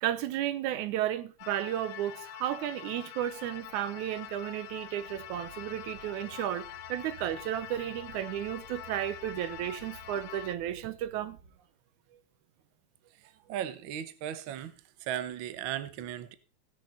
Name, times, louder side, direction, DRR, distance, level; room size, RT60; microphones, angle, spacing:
voice 1, 0.0-11.4, right 12 dB, 75° right, 2.1 m, -33 dB
sound 1, 1.4-10.6, left 12 dB, 75° left, 1.6 m, -45 dB
sound 2, 3.3-11.5, right 5 dB, 45° right, 2.7 m, -55 dB
voice 2, 13.5-14.7 15.0-16.3, right 10 dB, 90° right, 1.1 m, -36 dB
17.5 x 6.6 x 4.1 m
omnidirectional pair, 3.7 m